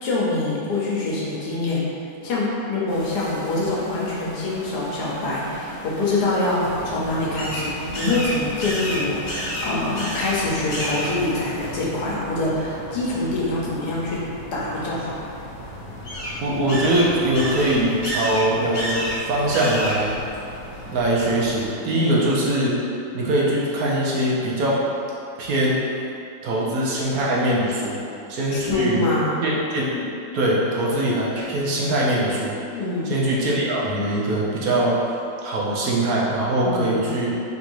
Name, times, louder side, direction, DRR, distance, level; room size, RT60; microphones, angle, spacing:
voice 1, 0.0-1.8 2.2-14.2 14.5-15.1 22.0-22.3 28.5-29.4 32.7-33.2 36.6-37.0, left 2 dB, 85° left, -6 dB, 1.4 m, -25 dB
sound 1, 2.9-11.9, left 1 dB, 30° left, 1.0 m, -38 dB
sound 2, 6.6-21.7, equal, 65° left, 1.5 m, -32 dB
voice 2, 16.4-20.2 20.9-22.7 23.1-24.8 25.4-25.8 26.4-28.0 28.3-30.1 30.3-32.6 33.1-35.0 35.4-37.3, right 1 dB, 70° right, -5 dB, 1.2 m, -22 dB
3.7 x 2.6 x 4.5 m, 2.7 s
omnidirectional pair, 1.6 m